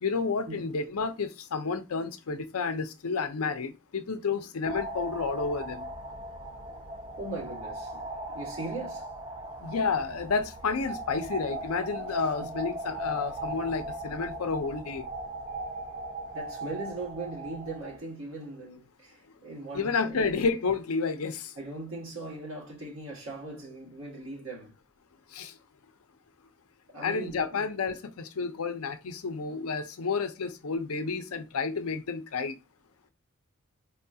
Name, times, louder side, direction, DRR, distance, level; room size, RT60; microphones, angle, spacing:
voice 1, 0.0-5.9 9.6-15.0 19.7-21.5 25.3-25.5 27.0-32.5, left 4 dB, 80° left, 0.6 m, -30 dB
sound 1, 4.6-18.0, right 1 dB, 20° right, 0.4 m, -38 dB
voice 2, 7.2-9.1 12.4-12.5 16.3-20.3 21.5-24.7 26.9-27.6, right 2 dB, 65° right, 1.6 m, -39 dB
4.2 x 2.3 x 2.7 m
head